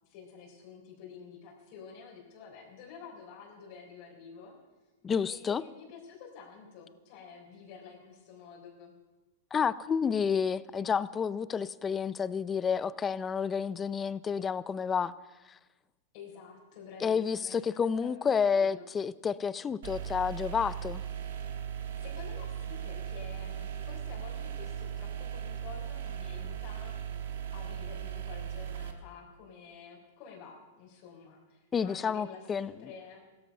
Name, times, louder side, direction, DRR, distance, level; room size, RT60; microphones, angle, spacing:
voice 1, 0.0-4.5 5.3-8.9 16.1-18.1 18.5-18.9 22.0-27.2 27.5-33.2, left 6 dB, 55° left, -3 dB, 4.0 m, -49 dB
voice 2, 5.0-5.6 9.5-15.1 17.0-21.0 31.7-32.7, left 6 dB, 20° left, 18 dB, 0.5 m, -30 dB
sound 1, 19.8-28.9, right 9 dB, 70° right, 1.6 m, -38 dB
16.0 x 13.5 x 5.5 m, 1.2 s
hypercardioid pair, 125°, 0 cm